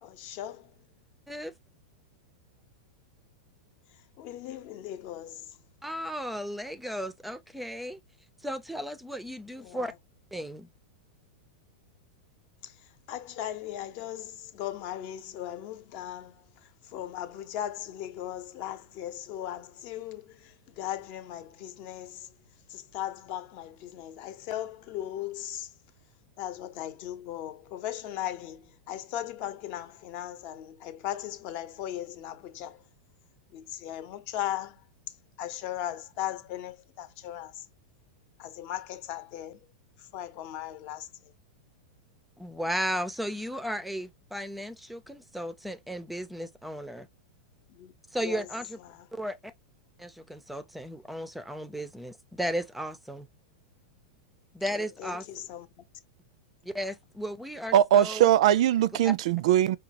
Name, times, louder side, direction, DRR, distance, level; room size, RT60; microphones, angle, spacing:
voice 1, 0.0-0.8 4.2-5.6 9.6-9.9 12.6-22.3 22.7-25.7 26.4-32.8 33.5-34.8 35.1-37.7 38.4-39.7 40.0-41.1 47.7-47.9 48.2-48.5 48.8-49.1 54.7-55.7, left 12 dB, 45° left, 0.8 m, -38 dB
voice 2, 5.8-8.0 8.4-9.9 10.3-10.7 42.4-47.1 48.1-48.8 49.1-49.5 50.0-53.3 54.5-55.2 56.6-58.3, equal, ahead, 0.4 m, -35 dB
voice 3, 57.7-59.8, right 11 dB, 65° right, 0.3 m, -21 dB
4.9 x 2.3 x 2.9 m
supercardioid pair, 140°, 4 cm